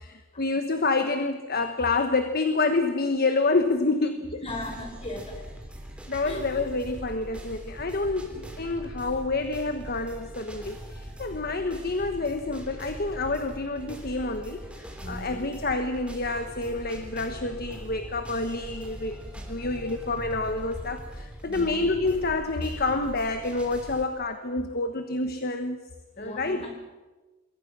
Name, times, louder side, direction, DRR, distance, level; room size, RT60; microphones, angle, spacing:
voice 1, 0.0-4.5 5.3-5.4 6.1-19.2 19.5-25.8 26.2-26.7, left 3 dB, 45° left, 7 dB, 1.3 m, -28 dB
voice 2, 4.1-5.4 6.2-6.4 8.2-8.4 15.0-15.4 21.5-21.8 26.2-26.8, left 1 dB, 30° left, 4 dB, 5.1 m, -38 dB
sound 1, 4.5-24.1, equal, 5° right, 3.7 m, -41 dB
27.5 x 22.0 x 6.2 m, 1.2 s
head